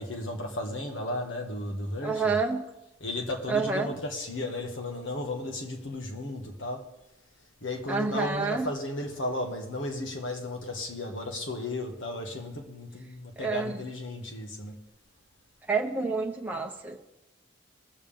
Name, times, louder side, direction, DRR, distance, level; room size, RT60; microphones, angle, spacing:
voice 1, 0.0-2.3 3.0-6.8 7.6-14.8, left 1 dB, 80° left, 1.6 m, -34 dB
voice 2, 2.0-2.6 3.5-3.9 7.9-8.7 13.4-13.8 15.7-17.0, right 4 dB, 10° right, 0.7 m, -28 dB
20.0 x 7.1 x 3.6 m
head